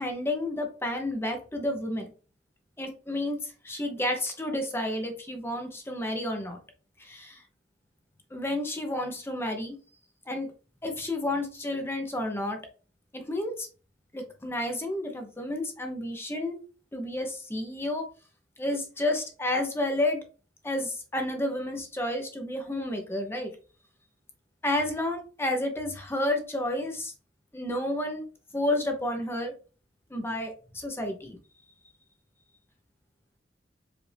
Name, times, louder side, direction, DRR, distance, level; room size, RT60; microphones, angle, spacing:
voice 1, 0.0-2.1 2.8-6.6 7.0-7.4 8.3-9.8 10.3-10.5 10.8-12.6 13.1-13.7 14.1-16.6 16.9-18.0 18.6-20.2 20.6-23.5 24.6-27.1 27.5-28.2 28.5-29.5 30.1-31.4, left 1 dB, 15° left, 3 dB, 0.8 m, -31 dB
4.9 x 2.6 x 3.3 m, 0.36 s
head